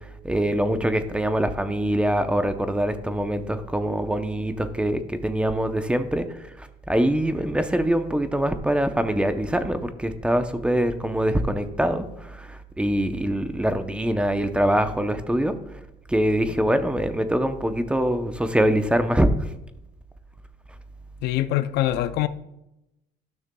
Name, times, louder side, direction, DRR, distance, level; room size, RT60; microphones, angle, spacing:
voice 1, 0.2-6.3 6.6-15.5 16.1-19.3, right 1 dB, 5° right, 0.7 m, -24 dB
voice 2, 21.2-22.3, left 14 dB, 80° left, 0.5 m, -23 dB
12.0 x 6.4 x 2.3 m
cardioid pair, 110°, 17 cm